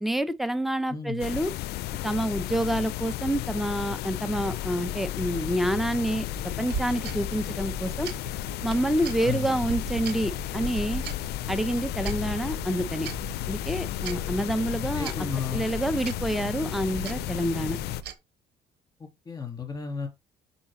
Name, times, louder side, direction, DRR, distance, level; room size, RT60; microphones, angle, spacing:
voice 1, 0.0-1.5 2.0-6.3 6.6-8.1 8.6-11.0 11.5-13.1 13.5-15.1 15.5-17.8, right 1 dB, ahead, 0.7 m, -28 dB
voice 2, 0.9-1.2 9.2-9.7 14.8-15.7 19.0-20.1, left 5 dB, 20° left, 3.1 m, -34 dB
sound 1, 1.2-18.0, left 16 dB, 75° left, 0.4 m, -33 dB
sound 2, 6.3-18.1, right 6 dB, 75° right, 1.4 m, -39 dB
6.1 x 4.9 x 3.7 m
cardioid pair, 110°, 17 cm